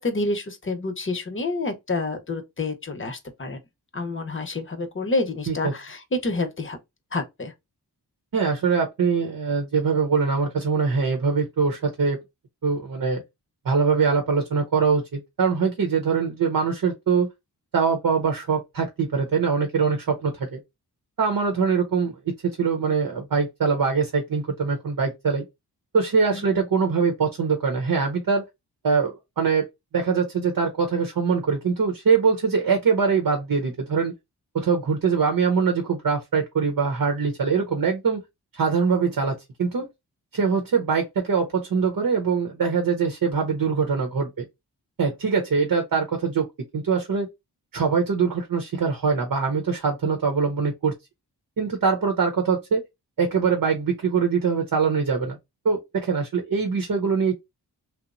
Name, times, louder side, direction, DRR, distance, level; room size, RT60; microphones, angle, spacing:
voice 1, 0.0-3.6 3.9-6.8 7.1-7.5 26.3-26.5, left 2 dB, 30° left, 0.8 m, -28 dB
voice 2, 8.3-12.2 12.6-13.2 13.6-17.3 17.7-20.6 21.2-25.4 25.9-28.4 28.8-29.7 29.9-34.1 34.5-38.2 38.5-39.9 40.3-44.4 45.0-46.5 46.7-47.3 47.7-50.9 51.6-52.8 53.2-55.4 55.6-57.3, right 5 dB, 55° right, 0.8 m, -23 dB
2.9 x 2.0 x 2.5 m
cardioid pair, 50°, 40 cm